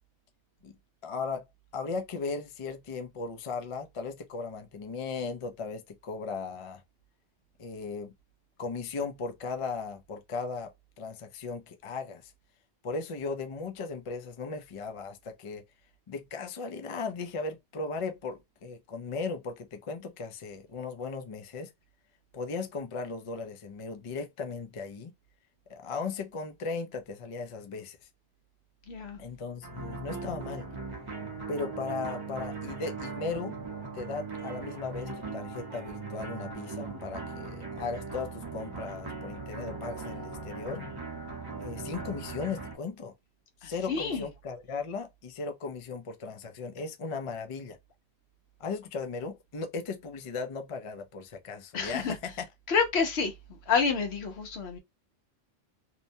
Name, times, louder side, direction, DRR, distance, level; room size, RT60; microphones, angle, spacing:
voice 1, 1.0-1.4 1.7-6.8 7.6-8.1 8.6-10.7 11.0-12.3 12.8-15.6 16.1-21.7 22.3-25.1 25.7-28.0 29.2-30.7 31.5-33.6 33.9-40.8 41.6-43.1 43.6-47.8 48.6-52.4, left 4 dB, 45° left, 0.4 m, -37 dB
voice 2, 28.9-29.2 43.6-44.2 51.7-52.1 52.7-53.3 53.7-54.8, left 5 dB, 70° left, 0.9 m, -28 dB
sound 1, 29.6-42.8, right 4 dB, 25° right, 0.7 m, -39 dB
2.7 x 2.2 x 2.6 m
omnidirectional pair, 1.1 m